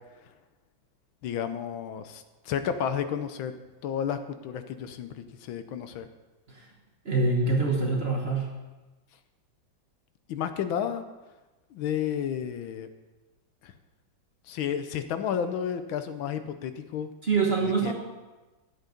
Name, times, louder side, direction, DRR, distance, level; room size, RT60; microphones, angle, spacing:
voice 1, 1.2-3.5 3.8-6.1 10.3-11.0 11.7-12.9 13.6-13.7 14.5-17.1 17.6-17.9, left 8 dB, 85° left, 10 dB, 1.5 m, -32 dB
voice 2, 7.0-8.5 17.2-17.9, right 3 dB, 35° right, -1 dB, 1.3 m, -24 dB
10.5 x 7.9 x 5.1 m, 1.2 s
omnidirectional pair, 2.1 m